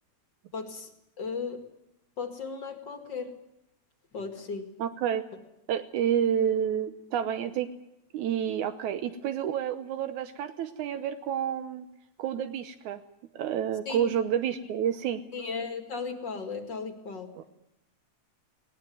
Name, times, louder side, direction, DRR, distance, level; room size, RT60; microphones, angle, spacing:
voice 1, 0.5-0.9 1.2-1.7 2.2-3.4 4.1-4.8 13.9-14.1 15.3-17.4, left 4 dB, 40° left, 6 dB, 2.4 m, -36 dB
voice 2, 4.8-5.3 5.7-7.7 8.1-11.9 12.2-13.0 13.3-15.2 17.4-17.5, right 9 dB, 80° right, 9 dB, 2.4 m, -29 dB
19.0 x 19.0 x 9.3 m, 0.89 s
omnidirectional pair, 3.4 m